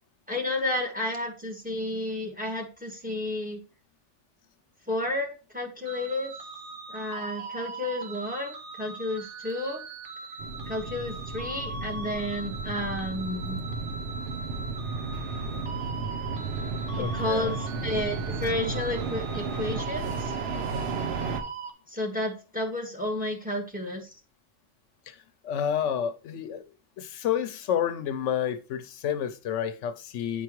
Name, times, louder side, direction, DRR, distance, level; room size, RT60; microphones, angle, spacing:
voice 1, 0.3-3.6 4.9-6.3 6.9-9.8 10.7-13.6 17.0-20.3 21.9-24.1, left 1 dB, 5° right, 1.2 m, -31 dB
sound 1, 5.9-21.7, right 4 dB, 80° right, 1.3 m, -40 dB
sound 2, 10.4-21.4, right 4 dB, 60° right, 0.9 m, -33 dB
voice 2, 17.0-17.6 25.1-25.2 25.4-26.6 27.0-30.4, left 9 dB, 80° left, 0.9 m, -30 dB
8.8 x 4.6 x 3.0 m
omnidirectional pair, 1.2 m